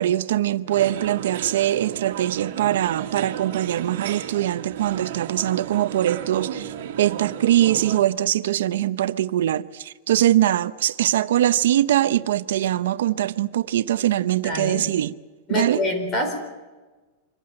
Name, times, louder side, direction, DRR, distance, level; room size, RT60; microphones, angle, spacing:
voice 1, 0.0-15.1 15.5-15.8, right 12 dB, 75° right, 0.7 m, -22 dB
sound 1, 0.7-8.0, right 10 dB, 60° right, 2.3 m, -34 dB
voice 2, 14.4-14.8 15.5-16.4, left 1 dB, 25° left, 4.4 m, -26 dB
25.5 x 15.5 x 8.9 m
supercardioid pair, 170°, 0 cm